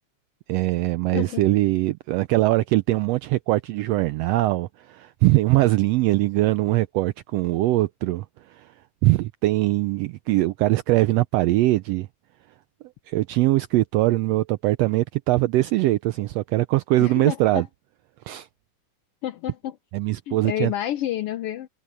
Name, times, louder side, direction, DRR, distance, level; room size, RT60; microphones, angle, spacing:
voice 1, 0.5-8.7 9.0-12.1 13.1-17.7 18.3-18.5 19.9-20.7, right 18 dB, 90° right, 1.4 m, -22 dB
voice 2, 17.0-17.6 19.2-19.8 20.3-21.7, left 12 dB, 80° left, 1.3 m, -29 dB
omnidirectional pair, 3.4 m